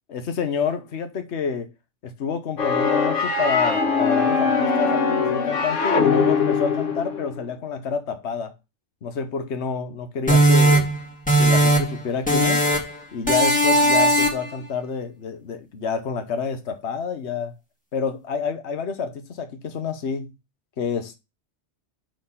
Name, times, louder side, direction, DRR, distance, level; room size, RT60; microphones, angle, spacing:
voice 1, 0.1-1.7 2.0-8.5 9.0-10.9 11.4-12.6 13.1-17.5 17.9-20.3 20.8-21.2, left 6 dB, 65° left, 1.3 m, -28 dB
sound 1, 2.6-7.3, left 5 dB, 85° left, 1.6 m, -21 dB
sound 2, 10.3-12.0 12.3-13.0 13.3-14.5, right 1 dB, 5° left, 2.2 m, -18 dB
6.3 x 4.5 x 5.5 m
omnidirectional pair, 1.2 m